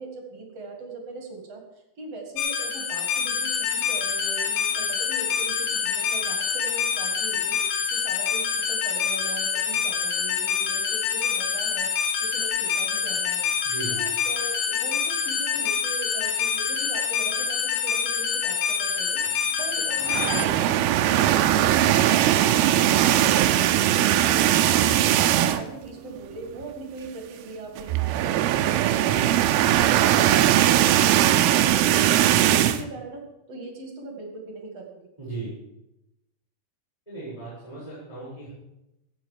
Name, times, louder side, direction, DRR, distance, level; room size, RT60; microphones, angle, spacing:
voice 1, 0.0-1.6 2.0-7.6 7.9-11.9 12.2-13.5 13.9-19.2 19.6-23.7 24.1-28.7 29.0-33.2 33.5-35.1, right 3 dB, 45° right, 2 dB, 2.4 m, -39 dB
sound 1, 2.4-20.5, left 7 dB, 85° left, 3.9 m, -26 dB
voice 2, 13.6-14.0 35.2-35.5 37.1-38.5, right 3 dB, 5° left, -9 dB, 6.4 m, -36 dB
sound 2, 20.0-25.8 26.2-26.4 26.6-26.7 27.8-32.8, right 12 dB, 90° right, 2.3 m, -20 dB
16.5 x 7.3 x 7.4 m, 0.90 s
omnidirectional pair, 5.3 m